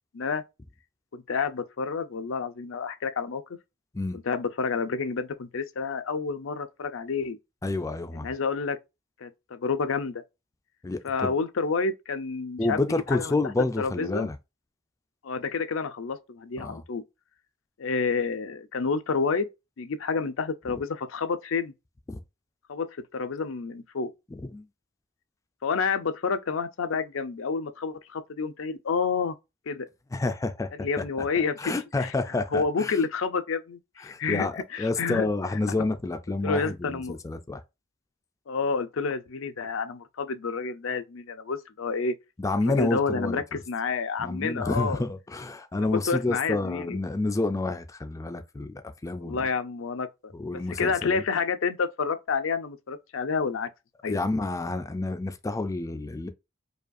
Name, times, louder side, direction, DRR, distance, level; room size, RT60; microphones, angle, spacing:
voice 1, 1.1-3.4 4.3-7.4 8.2-8.8 9.2-10.2 11.0-13.4 13.8-14.3 15.2-17.0 17.8-19.5 19.8-21.7 22.7-24.1 25.6-29.4 29.7-29.9 30.8-31.7 32.0-32.1 32.5-35.3 36.4-37.2 38.5-42.2 42.7-45.0 45.8-47.0 49.2-50.3 50.8-53.7 54.0-54.2, left 5 dB, 80° left, 0.5 m, -29 dB
voice 2, 7.6-8.3 10.8-11.3 12.6-14.4 16.6-16.8 22.1-22.2 24.3-24.6 30.1-30.7 31.0-31.1 31.6-33.0 34.0-34.5 34.8-37.6 42.4-43.6 44.2-48.7 49.0-49.5 50.3-51.2 54.1-56.3, left 2 dB, 15° left, 0.3 m, -29 dB
4.9 x 2.3 x 2.5 m
head